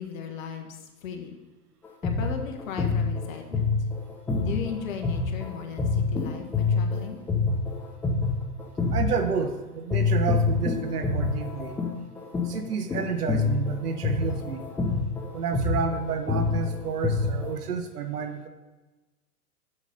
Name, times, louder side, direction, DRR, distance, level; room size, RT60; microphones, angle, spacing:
voice 1, 0.0-1.4 2.0-3.7 4.4-7.2, left 6 dB, 55° left, 4 dB, 1.5 m, -37 dB
sound 1, 1.8-9.6 9.9-17.5, left 4 dB, 5° left, 0.4 m, -27 dB
voice 2, 8.9-11.8 12.4-14.7 15.3-18.5, right 6 dB, 75° right, 8 dB, 1.2 m, -30 dB
7.3 x 6.6 x 5.4 m, 1.2 s
hypercardioid pair, 115°, 46 cm